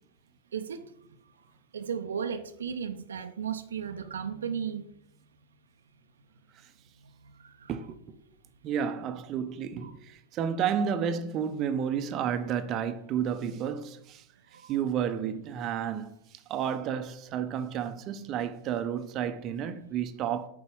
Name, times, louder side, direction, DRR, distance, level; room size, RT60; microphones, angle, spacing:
voice 1, 0.5-0.9 1.7-4.8 7.4-7.7 9.8-9.9 14.5-14.7, right 7 dB, 65° right, 0.6 m, -35 dB
voice 2, 7.7-8.0 8.6-14.2 14.7-16.1 16.5-20.5, right 8 dB, 35° right, 0.7 m, -31 dB
8.2 x 4.8 x 6.9 m
figure-of-eight pair, 90°, 0 cm